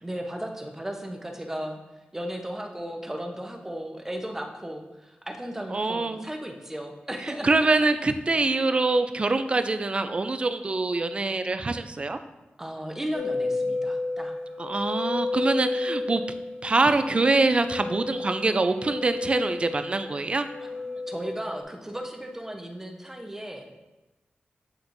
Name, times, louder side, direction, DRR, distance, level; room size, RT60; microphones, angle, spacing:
voice 1, 0.0-1.8 2.1-7.7 12.6-14.4 20.6-23.7, right 1 dB, 10° right, 2 dB, 0.7 m, -35 dB
voice 2, 5.7-6.2 7.4-12.2 14.6-16.2 16.6-20.5, right 3 dB, 30° right, 9 dB, 0.3 m, -24 dB
sound 1, 13.1-21.6, left 3 dB, 30° left, 0.9 m, -32 dB
8.5 x 4.3 x 2.6 m, 1.0 s
wide cardioid pair, 125°, 4 cm